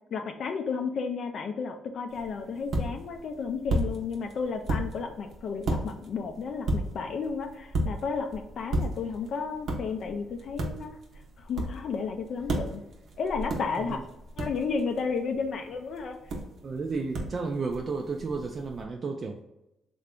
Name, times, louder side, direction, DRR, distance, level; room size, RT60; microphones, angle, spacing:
voice 1, 0.1-11.0 11.4-12.8 13.2-14.0 14.4-16.2, left 5 dB, 60° left, 5 dB, 0.3 m, -32 dB
sound 1, 2.1-18.8, right 1 dB, 60° right, 0.7 m, -35 dB
voice 2, 16.6-19.4, right 4 dB, 45° right, 3 dB, 0.3 m, -32 dB
3.2 x 2.5 x 3.5 m, 0.92 s
cardioid pair, 90°, 0 cm